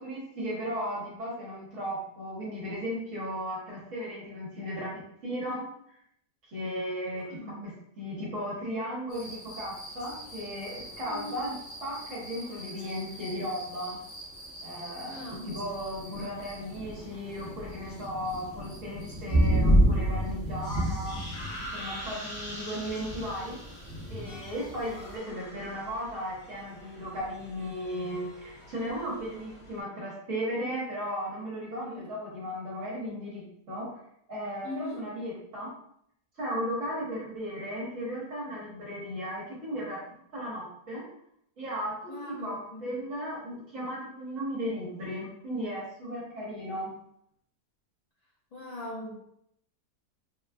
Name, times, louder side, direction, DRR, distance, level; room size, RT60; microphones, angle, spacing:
voice 1, 0.0-5.6 6.5-14.0 14.6-21.2 21.7-23.6 24.1-34.0 34.3-35.7 36.4-40.0 40.3-41.0 41.6-46.9, equal, 55° right, -6 dB, 1.5 m, -36 dB
voice 2, 7.1-7.7 11.1-11.3 15.0-15.6 31.8-32.1 34.6-35.0 42.1-42.8 48.5-49.1, left 2 dB, 55° left, -6 dB, 0.4 m, -40 dB
sound 1, 9.1-25.2, equal, 40° left, 1.2 m, -32 dB
sound 2, 20.6-29.8, equal, 85° left, 2.0 m, -45 dB
4.0 x 2.3 x 2.3 m, 0.72 s
omnidirectional pair, 1.7 m